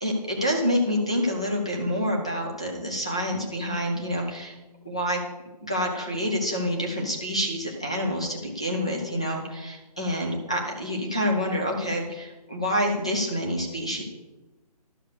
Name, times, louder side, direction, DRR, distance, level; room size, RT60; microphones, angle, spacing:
voice 1, 0.0-4.6 4.8-5.2 5.6-14.0, equal, 10° left, 0 dB, 0.4 m, -27 dB
12.5 x 5.1 x 6.5 m, 1.1 s
hypercardioid pair, 175°, 21 cm